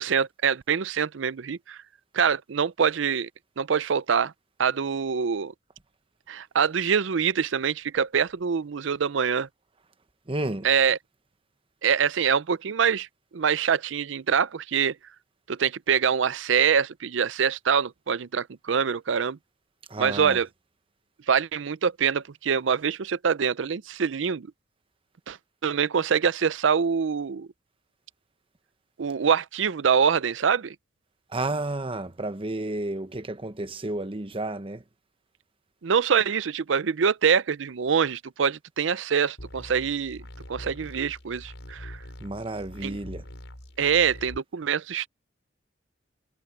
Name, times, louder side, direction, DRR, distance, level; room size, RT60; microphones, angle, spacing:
voice 1, 0.0-1.8 2.1-3.3 3.6-4.3 4.6-5.5 6.3-9.5 10.6-11.0 11.8-13.1 13.3-14.9 15.5-19.4 20.0-20.5 21.3-24.5 25.3-25.4 25.6-27.5 29.0-30.7 35.8-40.2 40.5-42.0 42.8-43.0 43.8-45.1, right 7 dB, 70° right, 0.5 m, -24 dB
voice 2, 10.3-10.7 19.9-20.4 31.3-34.8 42.2-43.2, right 2 dB, 30° right, 1.0 m, -31 dB
sound 1, 39.4-44.4, equal, 70° left, 6.7 m, -43 dB
head